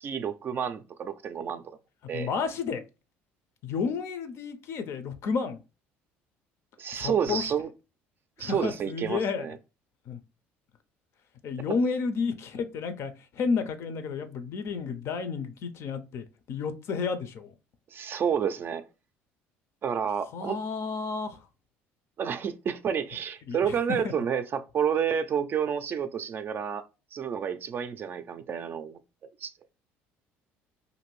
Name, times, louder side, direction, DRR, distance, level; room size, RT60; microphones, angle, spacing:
voice 1, 0.0-1.8 2.1-2.3 6.8-7.7 8.4-9.6 17.9-18.8 19.8-20.6 22.2-26.8 27.1-29.0 29.4-29.5, right 7 dB, 45° right, 0.4 m, -30 dB
voice 2, 2.1-2.8 3.6-5.6 6.9-7.5 8.4-9.5 10.1-10.2 11.4-17.5 20.3-21.4 23.5-24.1, left 5 dB, 60° left, 0.5 m, -31 dB
2.6 x 2.6 x 3.0 m
supercardioid pair, 90°, 5 cm